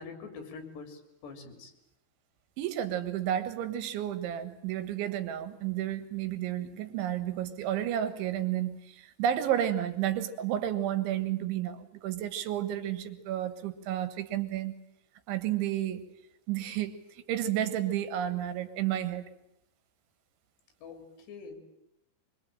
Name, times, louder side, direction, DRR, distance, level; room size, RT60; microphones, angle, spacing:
voice 1, 0.0-1.7 20.8-21.6, left 4 dB, 65° left, 6 dB, 5.4 m, -45 dB
voice 2, 2.6-14.7 15.3-16.0 16.5-19.3, right 11 dB, 85° right, 11 dB, 4.0 m, -31 dB
24.5 x 24.0 x 9.0 m, 0.84 s
omnidirectional pair, 5.2 m